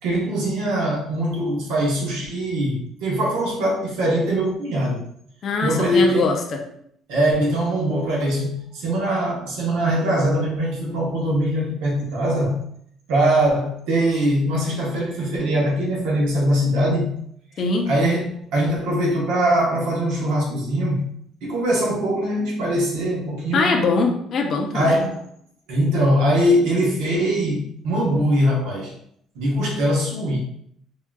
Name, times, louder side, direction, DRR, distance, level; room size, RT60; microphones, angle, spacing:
voice 1, 0.0-5.0 5.6-6.3 7.1-12.6 13.1-17.2 17.9-21.0 21.4-23.7 24.7-25.2 25.7-28.9 29.4-30.4, right 1 dB, 85° right, -3 dB, 0.8 m, -22 dB
voice 2, 5.4-6.6 17.6-17.9 23.5-25.1, left 3 dB, 45° left, 2 dB, 0.5 m, -22 dB
3.5 x 2.4 x 2.3 m, 0.68 s
cardioid pair, 130°, 0 cm